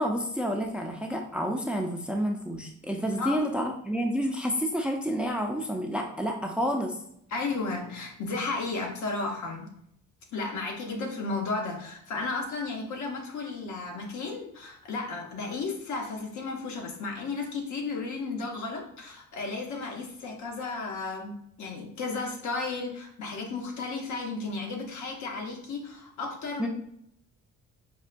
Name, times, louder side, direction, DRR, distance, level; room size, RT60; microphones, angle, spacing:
voice 1, 0.0-7.0 26.6-26.7, equal, 5° right, 3 dB, 0.4 m, -29 dB
voice 2, 7.3-9.7 10.3-26.7, left 3 dB, 70° left, 2 dB, 0.9 m, -34 dB
5.3 x 2.1 x 2.5 m, 0.72 s
cardioid pair, 90°, 30 cm